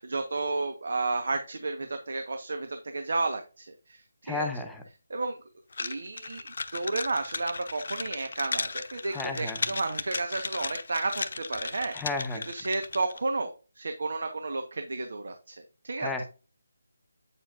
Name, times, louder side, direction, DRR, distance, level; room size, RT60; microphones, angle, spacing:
voice 1, 0.0-4.4 5.1-5.4 5.8-11.9 12.5-15.6 15.8-16.1, right 3 dB, 65° right, 6 dB, 1.2 m, -32 dB
voice 2, 4.2-4.8 9.1-9.7 11.9-12.5 16.0-16.2, left 3 dB, 5° left, 2 dB, 0.9 m, -33 dB
sound 1, 5.7-13.2, left 4 dB, 60° left, 0.8 m, -36 dB
8.9 x 7.0 x 2.5 m, 0.34 s
figure-of-eight pair, 160°, 0 cm